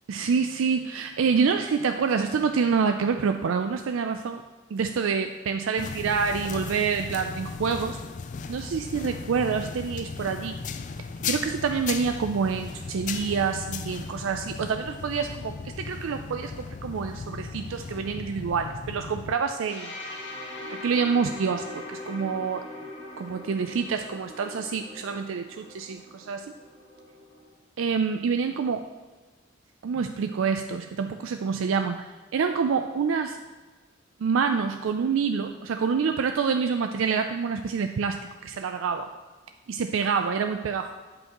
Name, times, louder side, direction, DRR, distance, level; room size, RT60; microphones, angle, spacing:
voice 1, 0.1-4.4 4.7-8.0 8.5-10.6 11.3-19.9 20.7-22.6 23.2-26.5 27.8-28.8 29.8-33.4 34.2-39.1 39.7-40.9, right 5 dB, 80° right, 7 dB, 0.4 m, -27 dB
sound 1, 5.8-19.3, left 5 dB, 40° left, 0.3 m, -36 dB
sound 2, 19.7-27.5, left 1 dB, 65° left, 2.0 m, -41 dB
8.7 x 7.6 x 3.0 m, 1.3 s
head